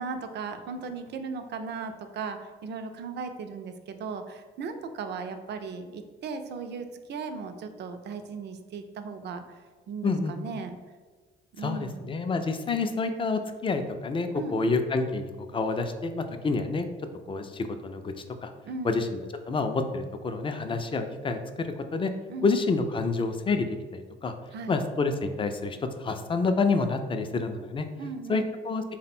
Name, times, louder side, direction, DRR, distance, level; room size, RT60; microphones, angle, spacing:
voice 1, 0.0-9.4 9.9-10.8 11.5-12.0 14.3-14.6 18.6-19.0 22.3-22.5 24.5-24.8 28.0-28.5, right 4 dB, 60° right, 7 dB, 0.4 m, -37 dB
voice 2, 10.0-10.4 11.6-16.9 17.3-18.1 18.4-18.5 18.8-22.1 22.4-24.3 24.7-27.9 28.3-28.8, left 3 dB, 25° left, 7 dB, 0.3 m, -28 dB
3.6 x 2.1 x 4.1 m, 1.4 s
cardioid pair, 90°, 20 cm